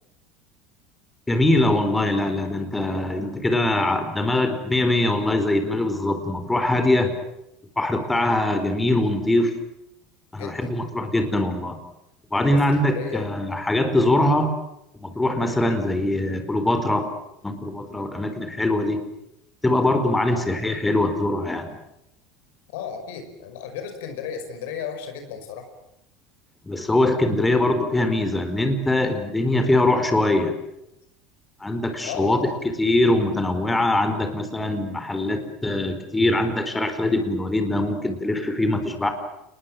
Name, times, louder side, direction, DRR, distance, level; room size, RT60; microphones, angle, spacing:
voice 1, 1.3-7.1 7.8-9.5 10.3-11.8 12.3-14.5 15.0-17.1 17.4-19.0 19.6-21.7 26.6-30.5 31.6-32.4 32.8-39.1, left 1 dB, 10° left, 7 dB, 4.4 m, -22 dB
voice 2, 10.3-10.8 11.1-11.2 12.4-13.3 20.3-20.4 22.7-25.7 32.0-32.6, left 7 dB, 70° left, 6 dB, 5.4 m, -34 dB
29.0 x 20.5 x 7.8 m, 0.84 s
hypercardioid pair, 75°, 0 cm